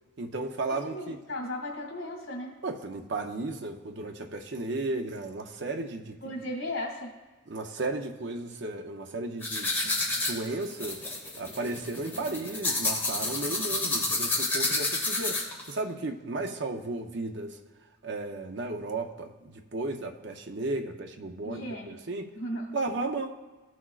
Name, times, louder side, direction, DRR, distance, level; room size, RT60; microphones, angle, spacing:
voice 1, 0.2-1.2 2.6-6.2 7.5-11.0 11.4-17.6 18.0-22.3 22.7-23.4, right 2 dB, 55° right, 5 dB, 0.6 m, -34 dB
voice 2, 0.7-2.6 6.2-7.1 21.4-22.0 22.3-22.8, left 1 dB, 80° left, 0 dB, 2.2 m, -36 dB
sound 1, 9.4-15.7, left 2 dB, 10° left, 1.2 m, -30 dB
15.0 x 6.1 x 2.4 m, 1.3 s
head